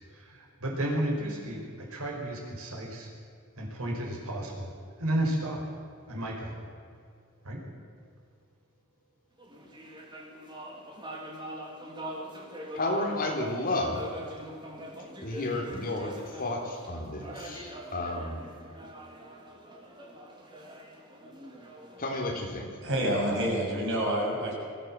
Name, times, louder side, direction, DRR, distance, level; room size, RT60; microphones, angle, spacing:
voice 1, 0.1-3.1 3.6-4.7 5.0-5.6 6.1-6.5 7.4-7.6, right 1 dB, 75° right, -1 dB, 5.3 m, -32 dB
sound 1, 9.4-23.1, equal, 20° right, 3.4 m, -44 dB
voice 2, 12.7-14.0 15.2-18.4 22.0-22.7, left 2 dB, 40° left, 1 dB, 3.8 m, -32 dB
voice 3, 22.8-24.5, equal, 55° right, -2 dB, 7.1 m, -28 dB
22.5 x 16.0 x 7.7 m, 2.4 s
head